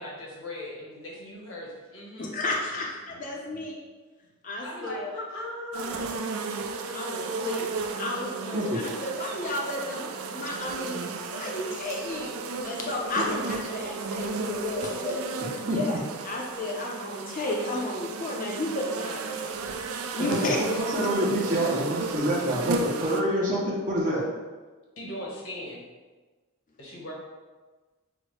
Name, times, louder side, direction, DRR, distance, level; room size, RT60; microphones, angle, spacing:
voice 1, 0.0-2.3 3.1-3.2 3.5-3.6 4.6-6.3 20.2-20.4 22.3-22.4 25.0-25.8 26.8-27.1, left 1 dB, 75° left, -3 dB, 1.0 m, -39 dB
voice 2, 2.2-3.8 4.4-5.1 6.9-7.7 8.0-12.3 12.6-15.2 15.7-19.4 20.1-20.6, left 2 dB, 40° left, -1 dB, 0.5 m, -32 dB
sound 1, 5.7-23.2, right 3 dB, 80° right, 0.4 m, -34 dB
voice 3, 20.2-24.3, right 1 dB, 40° right, -4 dB, 0.6 m, -27 dB
6.1 x 2.1 x 3.1 m, 1.3 s
head